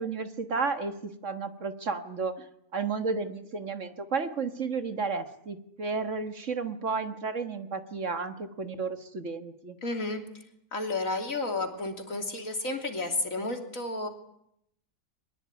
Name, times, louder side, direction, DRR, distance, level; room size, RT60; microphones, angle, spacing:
voice 1, 0.0-2.3 2.7-9.8, right 4 dB, 55° right, 9 dB, 1.9 m, -32 dB
voice 2, 9.8-10.2 10.7-14.1, left 2 dB, 65° left, 5 dB, 3.5 m, -31 dB
23.0 x 20.5 x 9.7 m, 0.76 s
omnidirectional pair, 1.5 m